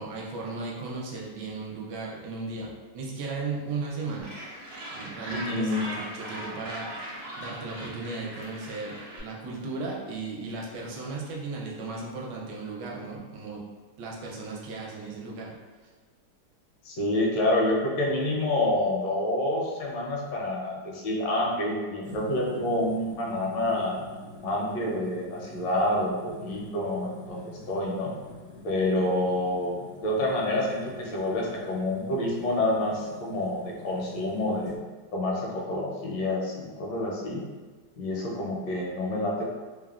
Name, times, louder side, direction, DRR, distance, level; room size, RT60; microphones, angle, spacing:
voice 1, 0.0-4.6 4.9-13.6 14.0-15.6, right 3 dB, 75° right, -3 dB, 1.2 m, -36 dB
Gull seagull, 4.2-9.2, right 1 dB, 55° right, 1.0 m, -39 dB
voice 2, 5.3-5.8 16.8-23.9 24.4-28.2 28.6-34.7 35.1-37.5 38.0-39.5, left 1 dB, 80° left, -2 dB, 1.3 m, -28 dB
sound 1, 22.0-34.8, left 1 dB, 65° left, 0.6 m, -46 dB
3.2 x 2.0 x 2.3 m, 1.4 s
omnidirectional pair, 1.9 m